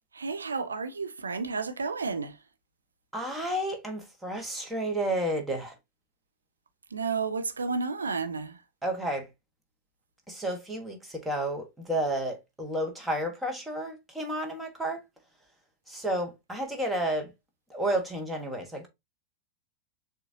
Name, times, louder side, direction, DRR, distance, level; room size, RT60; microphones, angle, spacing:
voice 1, 0.1-2.4 6.9-8.6, right 4 dB, 75° right, 0.6 m, -31 dB
voice 2, 3.1-5.7 8.8-9.3 10.3-15.0 15.9-17.3 17.7-18.9, right 1 dB, 5° right, 1.3 m, -31 dB
6.5 x 2.5 x 2.7 m
figure-of-eight pair, 90°, 0 cm